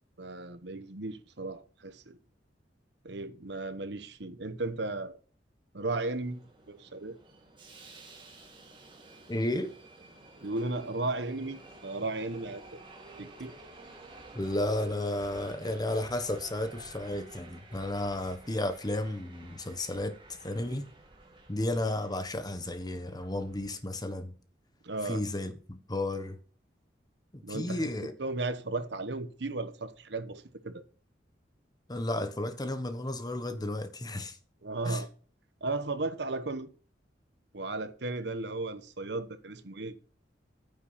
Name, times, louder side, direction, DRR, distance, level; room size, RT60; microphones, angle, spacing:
voice 1, 0.2-2.2 3.0-5.2 5.7-7.2 10.4-12.6 13.2-13.5 24.8-25.2 27.4-27.9 28.2-30.8 34.6-35.1 35.6-36.7 37.5-39.9, right 2 dB, 70° right, 1.1 m, -35 dB
Subway metro underground, 5.8-23.7, right 2 dB, 30° right, 2.4 m, -52 dB
voice 2, 9.3-9.7 14.3-20.2 20.4-20.9 21.5-24.3 25.0-26.4 27.3-28.1 31.9-34.4 34.8-35.0, left 1 dB, 20° left, 1.2 m, -33 dB
9.5 x 7.3 x 5.6 m
head